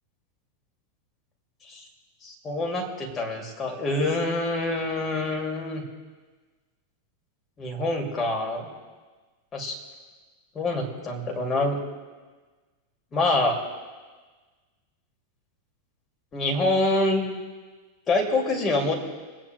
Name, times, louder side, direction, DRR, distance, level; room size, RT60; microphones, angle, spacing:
voice 1, 2.2-5.8 7.6-8.7 9.5-9.7 10.5-11.8 13.1-13.6 16.3-17.3 18.1-18.9, left 2 dB, 25° left, 0 dB, 2.4 m, -26 dB
25.0 x 8.8 x 2.3 m, 1.4 s
figure-of-eight pair, 90°, 0 cm